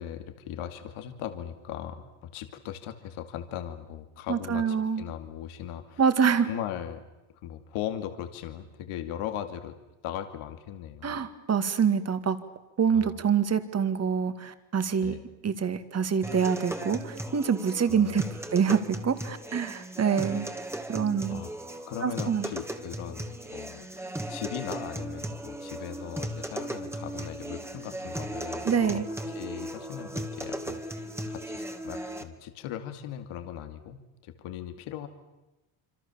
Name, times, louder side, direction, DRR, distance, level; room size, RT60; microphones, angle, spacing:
voice 1, 0.0-6.0 6.4-7.0 7.4-9.8 10.0-11.2 12.9-13.1 15.0-15.2 17.9-18.4 21.3-21.5 21.9-29.0 29.3-35.1, left 10 dB, 85° left, 8 dB, 2.5 m, -39 dB
voice 2, 4.3-5.0 6.0-6.5 11.0-12.4 12.8-15.2 15.4-18.2 18.5-20.5 20.9-21.4 22.0-22.5 28.6-29.1, right 6 dB, 30° right, 10 dB, 2.3 m, -26 dB
sound 1, 16.2-32.2, right 1 dB, 5° right, 2.2 m, -37 dB
27.0 x 26.5 x 7.3 m, 1.0 s
cardioid pair, 130°, 49 cm